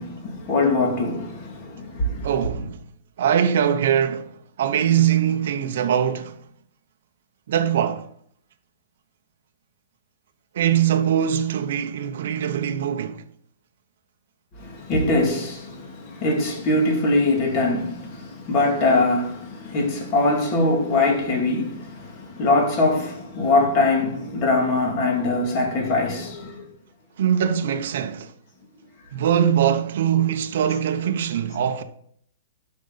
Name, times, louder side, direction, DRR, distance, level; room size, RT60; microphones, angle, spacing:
voice 1, 0.0-2.3 14.6-26.7, left 2 dB, 30° left, 2.3 m, -22 dB
voice 2, 2.2-2.8 3.2-4.3 4.6-6.4 7.5-8.0 10.5-13.2 27.2-28.3 29.1-31.8, right 9 dB, 55° right, 0.8 m, -22 dB
12.0 x 5.3 x 3.9 m
hypercardioid pair, 170°, 0 cm